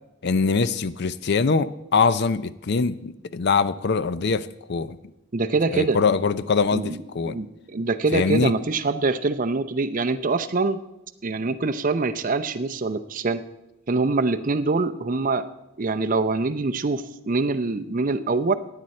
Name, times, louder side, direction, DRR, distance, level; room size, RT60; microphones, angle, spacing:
voice 1, 0.2-5.0 5.7-7.4 8.1-8.5, left 4 dB, 50° left, 15 dB, 0.5 m, -23 dB
voice 2, 5.3-6.0 6.7-10.8 11.2-13.4 13.9-15.4 15.8-18.5, right 3 dB, 40° right, 9 dB, 0.5 m, -24 dB
15.5 x 9.1 x 4.3 m, 0.91 s
head